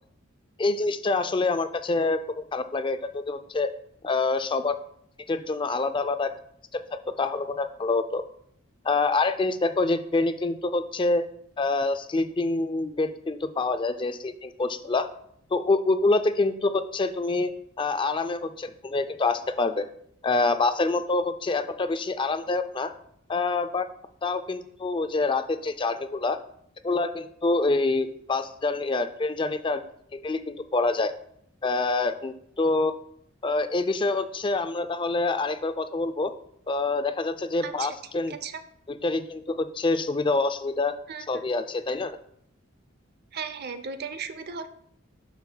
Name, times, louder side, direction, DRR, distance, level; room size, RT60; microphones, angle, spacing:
voice 1, 0.6-3.7 4.0-4.8 5.3-6.3 6.7-8.2 8.8-11.2 11.6-15.1 15.5-17.5 17.8-19.9 20.2-22.9 23.3-23.9 24.2-26.4 26.8-29.8 30.1-31.1 31.6-32.9 33.4-36.3 36.7-38.4 39.0-40.9 41.3-42.2, left 3 dB, 25° left, 10 dB, 0.4 m, -26 dB
voice 2, 38.3-38.6 41.1-41.4 43.3-44.7, right 6 dB, 50° right, 10 dB, 0.6 m, -36 dB
11.5 x 5.7 x 2.3 m, 0.69 s
head